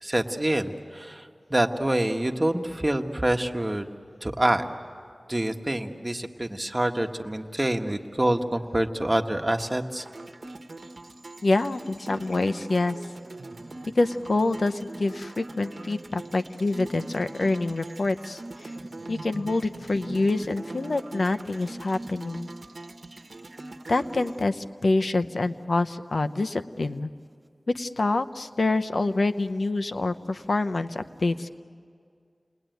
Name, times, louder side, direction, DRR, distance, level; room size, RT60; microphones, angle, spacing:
voice 1, 0.0-3.9 4.2-4.6 5.3-10.0, right 1 dB, 30° right, 4 dB, 1.5 m, -26 dB
sound 1, 10.0-24.4, right 2 dB, 75° right, 1.1 m, -41 dB
voice 2, 11.4-13.0 13.9-18.7 19.1-22.5 23.9-27.1 27.7-31.5, left 2 dB, 80° left, 9 dB, 0.7 m, -26 dB
29.5 x 21.0 x 9.3 m, 2.2 s
wide cardioid pair, 40°, 0 cm